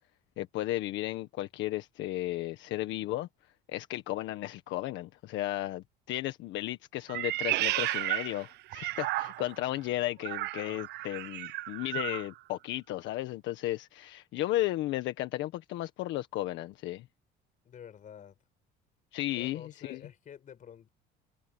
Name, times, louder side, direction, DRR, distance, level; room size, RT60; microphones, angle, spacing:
voice 1, 0.4-3.3 3.7-17.0 19.1-20.0, left 15 dB, 75° left, 1.5 m, -34 dB
Meow, 7.1-9.6 10.2-12.3, right 18 dB, 60° right, 0.4 m, -33 dB
voice 2, 17.7-18.4 19.4-20.9, left 8 dB, 40° left, 5.2 m, -49 dB
cardioid pair, 135°, 20 cm